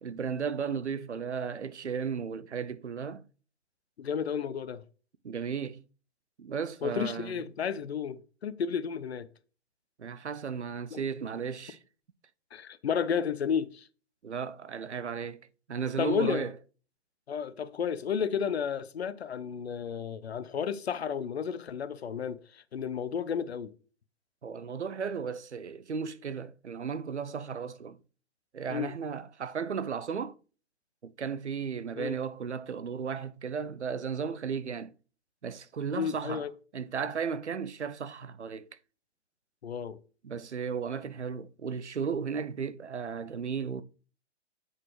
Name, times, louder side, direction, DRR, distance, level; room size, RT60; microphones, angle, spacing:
voice 1, 0.0-3.2 5.2-5.8 6.4-7.3 10.0-11.8 14.2-16.5 24.4-28.0 28.5-30.3 31.0-34.9 35.4-36.4 36.7-38.7 40.2-43.8, right 6 dB, 85° right, 0.6 m, -35 dB
voice 2, 4.0-4.8 6.8-9.3 10.9-11.0 12.5-13.9 16.0-16.5 17.3-23.7 28.7-28.9 32.0-32.2 35.9-36.5 39.6-40.0, left 7 dB, 70° left, 0.8 m, -32 dB
8.0 x 5.8 x 3.1 m
figure-of-eight pair, 120°, 33 cm